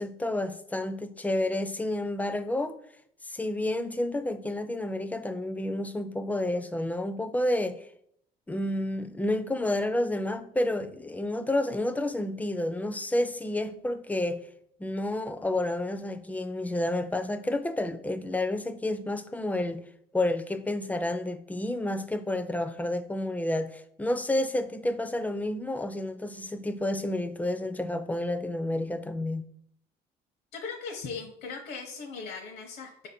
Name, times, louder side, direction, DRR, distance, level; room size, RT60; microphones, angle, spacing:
voice 1, 0.0-2.8 3.2-7.8 8.5-14.4 14.8-19.8 20.1-29.5, left 1 dB, 10° left, 0.4 m, -30 dB
voice 2, 30.5-33.1, left 5 dB, 70° left, 0.8 m, -38 dB
4.9 x 2.6 x 4.2 m
cardioid pair, 110°, 17 cm